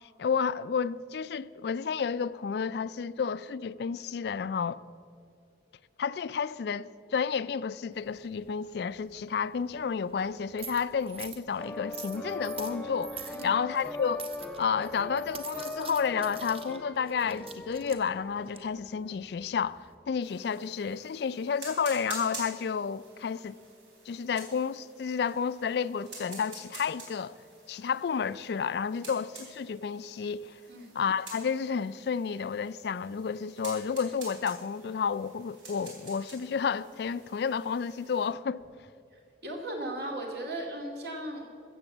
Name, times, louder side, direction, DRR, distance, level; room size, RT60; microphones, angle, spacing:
voice 1, 0.2-4.8 6.0-14.3 14.6-23.6 24.1-27.4 27.7-30.6 31.0-38.6, left 6 dB, 65° left, 0.3 m, -31 dB
sound 1, 7.9-19.9, right 6 dB, 30° right, 0.9 m, -47 dB
sound 2, 11.6-19.2, left 2 dB, 5° left, 0.5 m, -40 dB
salt shaker, 20.2-38.3, right 3 dB, 90° right, 4.0 m, -48 dB
voice 2, 39.1-41.5, right 1 dB, 60° right, 2.5 m, -37 dB
14.5 x 7.8 x 7.3 m
head